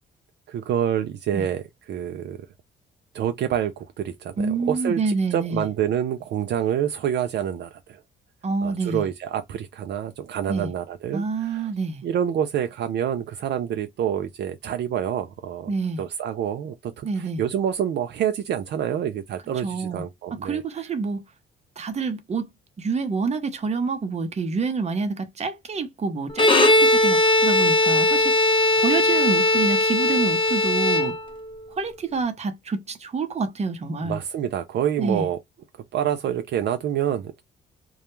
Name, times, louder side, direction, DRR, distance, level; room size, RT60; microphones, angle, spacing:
voice 1, 0.5-2.4 3.1-4.3 4.6-8.0 8.6-11.7 12.0-15.7 16.0-20.6 34.0-35.4 35.9-37.4, right 9 dB, 60° right, 0.4 m, -27 dB
voice 2, 4.4-5.7 8.4-9.1 10.5-10.7 11.1-12.0 15.7-16.0 17.0-17.4 19.6-20.0 20.4-21.2 21.8-22.5 22.8-31.1 31.7-34.2 35.0-35.3, right 4 dB, 35° right, 0.7 m, -27 dB
Bowed string instrument, 26.3-31.6, left 2 dB, 25° left, 0.9 m, -19 dB
2.3 x 2.0 x 3.0 m
cardioid pair, 90°, 20 cm